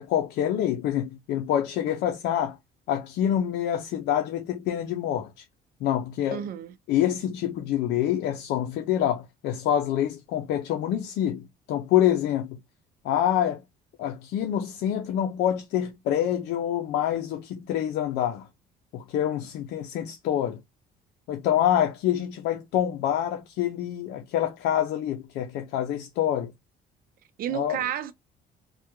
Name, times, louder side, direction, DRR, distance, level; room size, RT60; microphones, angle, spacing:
voice 1, 0.0-2.6 2.9-5.4 5.8-6.4 6.9-12.6 13.0-13.6 14.0-18.5 18.9-20.6 21.3-26.5 27.5-27.8, left 10 dB, 80° left, 0.6 m, -26 dB
voice 2, 6.3-6.8 27.4-28.1, right 10 dB, 60° right, 0.6 m, -31 dB
3.4 x 2.3 x 3.0 m
cardioid pair, 110°, 17 cm